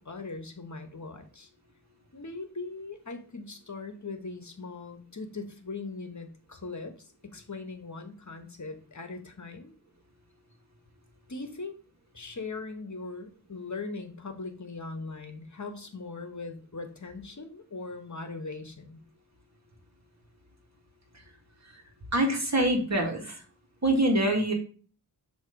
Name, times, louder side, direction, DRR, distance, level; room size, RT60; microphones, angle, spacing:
voice 1, 0.0-1.5 2.1-9.7 11.3-11.8 12.1-19.0, left 3 dB, 45° left, 7 dB, 1.1 m, -40 dB
voice 2, 22.1-23.4 23.8-24.5, right 1 dB, 40° right, 1 dB, 1.7 m, -25 dB
6.3 x 3.0 x 5.0 m, 0.40 s
wide cardioid pair, 45°, 41 cm